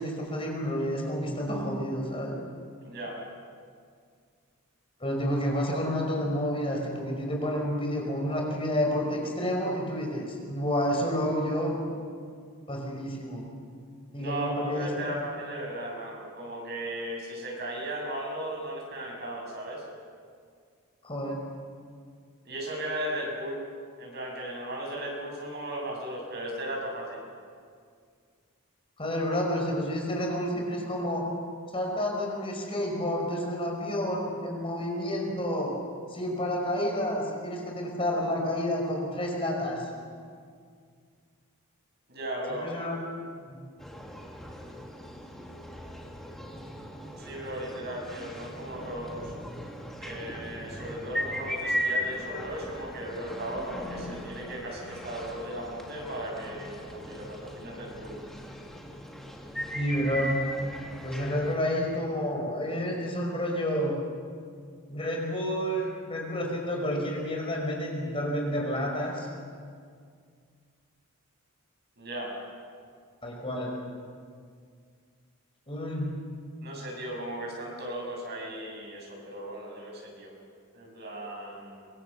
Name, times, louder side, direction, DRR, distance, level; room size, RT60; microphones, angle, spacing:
voice 1, 0.0-2.4 5.0-11.8 12.7-13.5 14.1-14.9 21.0-21.4 29.0-31.3 31.7-35.7 36.1-39.9 42.5-43.0 43.5-43.6 59.7-60.4 61.0-63.9 64.9-69.3 73.2-73.7 75.7-76.1, equal, 25° left, -1 dB, 5.3 m, -30 dB
voice 2, 2.8-3.2 14.2-19.8 22.4-23.6 24.0-27.2 42.1-42.7 47.2-49.3 50.0-58.2 72.0-72.3 76.6-80.3 80.7-81.9, right 1 dB, 50° right, -1 dB, 7.7 m, -36 dB
sound 1, 43.8-61.5, equal, ahead, 2.6 m, -38 dB
26.5 x 24.5 x 7.1 m, 2.1 s
head